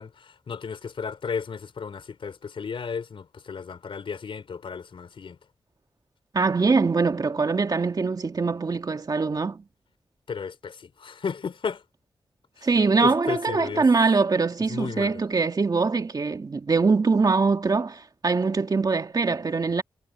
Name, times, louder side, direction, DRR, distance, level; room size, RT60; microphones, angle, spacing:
voice 1, 0.0-5.4 10.3-11.8 12.6-12.7 13.0-13.9 14.7-15.2, left 6 dB, 80° left, 4.3 m, -34 dB
voice 2, 6.3-9.6 12.6-19.8, right 4 dB, 50° right, 2.1 m, -23 dB
wide cardioid pair, 90°, 9 cm